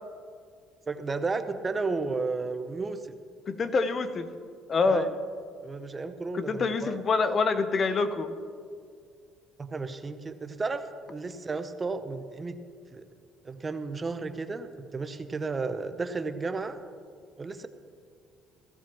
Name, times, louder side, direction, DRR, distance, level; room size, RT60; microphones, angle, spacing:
voice 1, 0.9-3.0 4.8-5.2 5.6-7.0 9.6-12.6 12.9-13.1 13.4-16.8 17.4-17.7, right 3 dB, 25° right, 9 dB, 0.8 m, -33 dB
voice 2, 3.5-4.3 4.7-5.1 6.3-8.3, left 4 dB, 40° left, 11 dB, 0.8 m, -26 dB
17.0 x 15.0 x 3.1 m, 2.2 s
cardioid pair, 100°, 0 cm